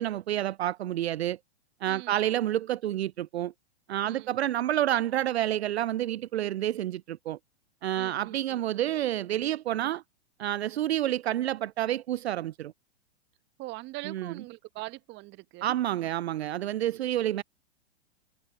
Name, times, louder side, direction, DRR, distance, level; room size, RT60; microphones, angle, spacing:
voice 1, 0.0-1.4 1.8-3.5 3.9-7.4 7.8-10.0 10.4-12.7 14.1-14.3 15.6-17.4, right 12 dB, 65° right, 0.5 m, -29 dB
voice 2, 1.9-2.2 4.0-4.3 8.0-8.6 13.6-15.8, right 21 dB, 30° right, 1.4 m, -42 dB
figure-of-eight pair, 110°, 34 cm